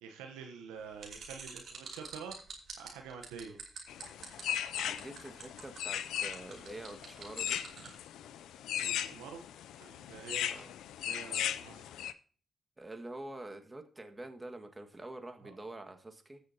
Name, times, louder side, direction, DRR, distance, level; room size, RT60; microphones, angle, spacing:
voice 1, 0.0-2.4 2.8-3.6 7.8-7.9 8.8-9.4 9.8-10.7 11.0-11.9 15.4-15.5, right 6 dB, 90° right, 4 dB, 0.9 m, -47 dB
sound 1, 1.0-7.9, right 5 dB, 65° right, 2.9 m, -47 dB
sound 2, 3.9-12.1, left 10 dB, 80° left, 0.4 m, -38 dB
voice 2, 4.7-7.6 10.5-10.7 12.8-16.4, right 2 dB, 25° right, 5 dB, 1.7 m, -46 dB
16.0 x 6.6 x 2.8 m, 0.40 s
hypercardioid pair, 40°, 0 cm